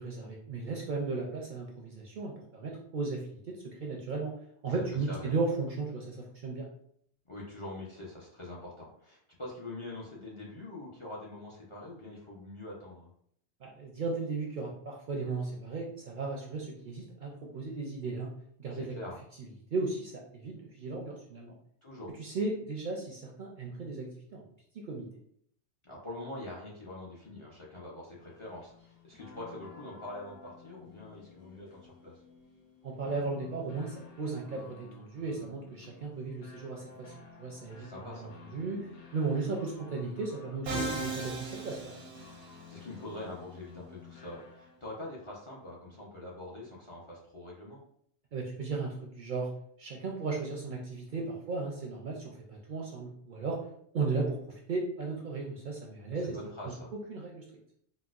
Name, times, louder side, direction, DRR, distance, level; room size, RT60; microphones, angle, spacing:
voice 1, 0.0-4.3 4.6-6.7 13.6-18.3 18.6-19.0 19.4-21.5 22.2-24.4 24.7-25.1 32.8-37.1 37.4-42.0 48.3-49.5 49.8-53.6 53.9-56.4 56.6-56.8 57.1-57.4, right 3 dB, 60° right, -1 dB, 0.6 m, -35 dB
voice 2, 7.3-13.1 18.7-19.2 21.8-22.1 25.8-32.1 37.8-38.3 42.7-47.8 56.2-56.9, left 1 dB, 35° left, -4 dB, 0.5 m, -44 dB
sound 1, 28.2-44.9, left 5 dB, 60° left, 0.8 m, -53 dB
Musical instrument, 40.7-42.7, right 2 dB, 85° right, 0.9 m, -37 dB
4.0 x 2.1 x 2.4 m, 0.67 s
omnidirectional pair, 1.1 m